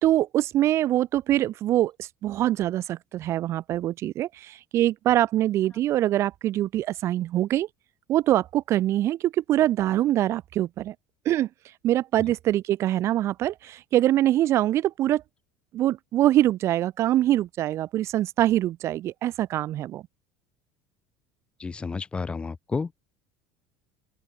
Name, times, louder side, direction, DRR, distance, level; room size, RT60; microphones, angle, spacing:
voice 1, 0.0-7.7 8.1-10.9 11.2-11.5 11.8-15.2 15.7-20.0, right 13 dB, 35° right, 1.5 m, -24 dB
voice 2, 21.6-23.0, left 4 dB, 10° left, 3.6 m, -31 dB
open air
cardioid pair, 180°, 8 cm